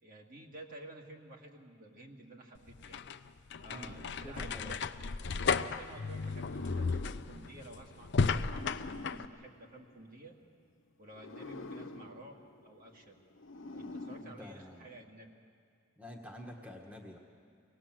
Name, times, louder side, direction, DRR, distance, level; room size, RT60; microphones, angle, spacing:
voice 1, 0.0-3.0 3.6-10.4 11.0-12.4 12.6-13.2 13.7-15.3, right 2 dB, 45° right, 0 dB, 2.1 m, -52 dB
sound 1, 2.6-9.3, left 5 dB, 60° left, 0.6 m, -34 dB
voice 2, 3.7-4.7 14.2-14.9 16.0-17.2, left 1 dB, 10° right, 1 dB, 1.5 m, -48 dB
sound 2, 6.2-10.4 11.1-15.0, left 2 dB, 80° left, 1.0 m, -47 dB
24.5 x 18.5 x 7.6 m, 2.2 s
head